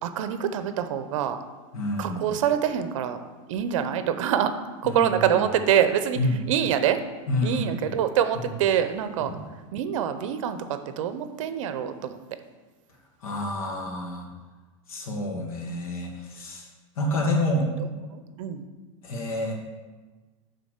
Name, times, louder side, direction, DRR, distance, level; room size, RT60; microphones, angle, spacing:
voice 1, 0.0-1.4 2.0-3.2 3.5-4.5 4.8-6.2 6.5-7.0 7.4-9.3 9.7-12.2 18.1-18.6, right 9 dB, 65° right, 10 dB, 0.8 m, -25 dB
voice 2, 1.7-2.3 4.8-5.1 6.2-6.4 7.3-8.0 8.3-8.5 9.2-9.4 13.2-14.3 14.9-16.7 17.0-17.7 19.0-19.5, left 1 dB, 90° left, 0 dB, 2.2 m, -28 dB
9.8 x 4.0 x 6.6 m, 1.3 s
supercardioid pair, 165°, 18 cm